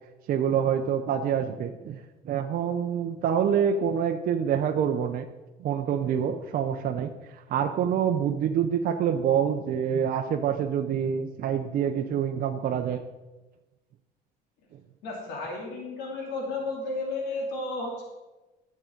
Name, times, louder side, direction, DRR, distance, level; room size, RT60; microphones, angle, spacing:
voice 1, 0.3-2.0 2.2-5.3 5.6-7.1 7.5-13.0, right 8 dB, 60° right, 4 dB, 0.7 m, -26 dB
voice 2, 15.0-18.0, left 2 dB, 85° left, -1 dB, 2.6 m, -33 dB
10.5 x 7.6 x 5.1 m, 1.1 s
cardioid pair, 110°, 17 cm